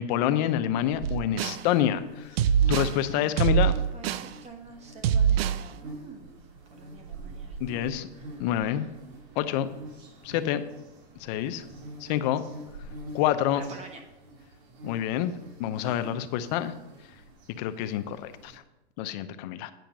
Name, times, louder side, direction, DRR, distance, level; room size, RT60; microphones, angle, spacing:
voice 1, 0.0-2.4 2.7-3.8 7.6-8.1 8.4-8.9 9.4-9.7 10.2-10.6 11.2-11.6 12.0-12.4 13.1-13.6 14.8-15.3 15.6-16.7 17.6-18.6 19.0-19.7, left 11 dB, 40° left, 11 dB, 0.6 m, -27 dB
sound 1, 0.8-18.6, right 1 dB, 45° right, 2.2 m, -46 dB
sound 2, 1.0-1.6 2.4-3.0 3.4-4.3 5.0-5.6, right 8 dB, 65° right, 0.5 m, -23 dB
voice 2, 3.9-9.0 13.5-14.0, right 3 dB, 20° right, 4 dB, 1.2 m, -48 dB
9.2 x 5.7 x 5.2 m, 0.97 s
supercardioid pair, 145°, 33 cm